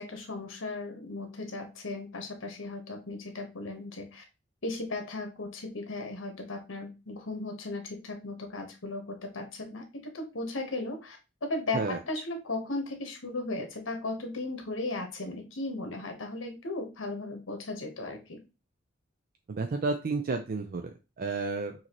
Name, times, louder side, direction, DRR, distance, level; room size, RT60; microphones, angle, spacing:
voice 1, 0.0-4.2 4.6-18.4, left 2 dB, 80° left, 4 dB, 1.2 m, -36 dB
voice 2, 19.5-21.7, right 3 dB, 50° right, 5 dB, 0.4 m, -31 dB
6.3 x 2.8 x 3.0 m, 0.29 s
head